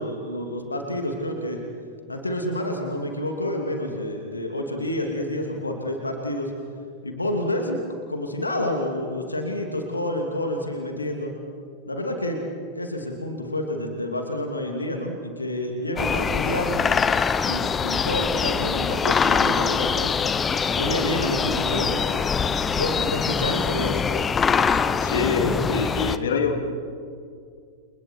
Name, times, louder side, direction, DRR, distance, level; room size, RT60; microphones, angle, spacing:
voice 1, 0.0-1.6 2.1-6.5 7.0-7.8 8.1-11.3 11.9-12.5 12.7-16.9 17.4-20.1 20.7-22.2 22.7-24.0, left 1 dB, 80° left, 3 dB, 2.8 m, -29 dB
sound 1, 16.0-26.2, left 6 dB, 20° left, 1.0 m, -23 dB
voice 2, 25.0-26.7, left 4 dB, 65° left, 4 dB, 3.2 m, -25 dB
30.0 x 29.5 x 4.7 m, 2.2 s
figure-of-eight pair, 90°, 0 cm